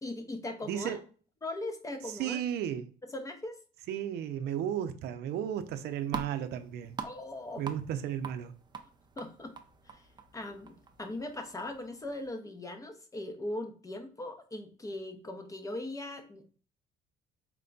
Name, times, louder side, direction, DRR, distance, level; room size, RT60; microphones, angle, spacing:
voice 1, 0.0-1.0 1.4-2.4 3.1-3.6 7.0-7.7 9.2-9.6 9.8-10.1 10.3-16.4, left 1 dB, 20° left, 0.7 m, -39 dB
voice 2, 0.7-1.0 2.2-2.9 3.9-7.0 7.6-8.5, right 10 dB, 75° right, 0.5 m, -34 dB
sound 1, 5.5-12.3, right 5 dB, 25° right, 0.5 m, -45 dB
4.5 x 2.2 x 3.8 m
cardioid pair, 110°, 17 cm